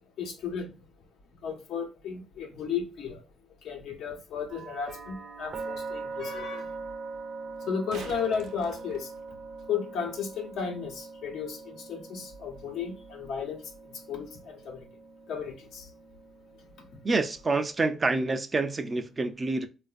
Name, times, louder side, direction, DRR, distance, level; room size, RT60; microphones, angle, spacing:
voice 1, 0.2-0.8 1.4-3.2 3.6-6.7 7.6-9.1 9.7-14.9 15.3-15.9, left 6 dB, 80° left, 0.9 m, -34 dB
sound 1, 4.5-18.4, right 4 dB, 55° right, 0.8 m, -43 dB
sound 2, 7.5-9.7 12.5-12.6, right 5 dB, 80° right, 0.5 m, -46 dB
voice 2, 17.0-19.7, right 3 dB, 30° right, 0.4 m, -27 dB
3.8 x 2.5 x 2.4 m
cardioid pair, 90°, 0 cm